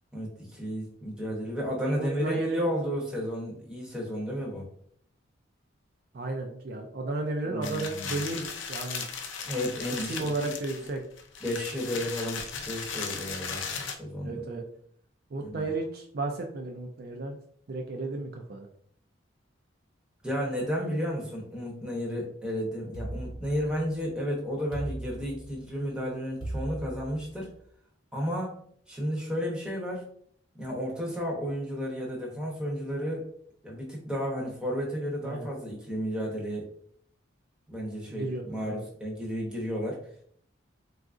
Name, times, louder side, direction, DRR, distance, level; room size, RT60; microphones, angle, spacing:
voice 1, 0.1-4.7 7.4-8.2 9.4-10.5 11.4-13.6 14.0-14.4 15.4-15.7 20.2-27.5 28.1-30.1 30.6-33.3 33.6-36.7 37.7-40.0, equal, 5° right, -3 dB, 0.7 m, -33 dB
voice 2, 1.9-2.7 6.1-9.0 10.1-11.0 14.2-14.6 15.3-17.4 17.7-18.7 35.2-35.5 38.1-38.9, right 2 dB, 50° right, 2 dB, 0.3 m, -33 dB
sound 1, 7.6-14.0, left 6 dB, 70° left, 0.4 m, -37 dB
sound 2, 22.9-24.0 24.7-25.8 26.4-27.5, right 1 dB, 20° left, 0.9 m, -38 dB
3.8 x 2.4 x 2.4 m, 0.62 s
head